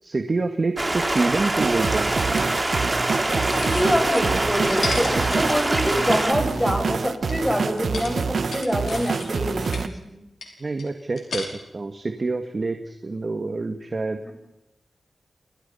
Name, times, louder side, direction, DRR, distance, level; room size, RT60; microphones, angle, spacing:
voice 1, 0.0-2.1 10.6-11.5 11.7-14.2, right 3 dB, 45° right, 6 dB, 1.9 m, -26 dB
Stream, 0.8-6.3, right 2 dB, 25° right, 3.4 m, -24 dB
sound 1, 1.6-9.9, right 5 dB, 70° right, 1.3 m, -27 dB
sound 2, 3.5-4.2 4.7-6.6 7.3-7.4 7.8-9.9 10.4-11.5, left 4 dB, 80° left, 5.4 m, -35 dB
voice 2, 3.6-10.1 14.2-14.3, equal, 5° left, 4 dB, 6.4 m, -25 dB
29.0 x 25.0 x 5.7 m, 0.92 s
wide cardioid pair, 75°, 0 cm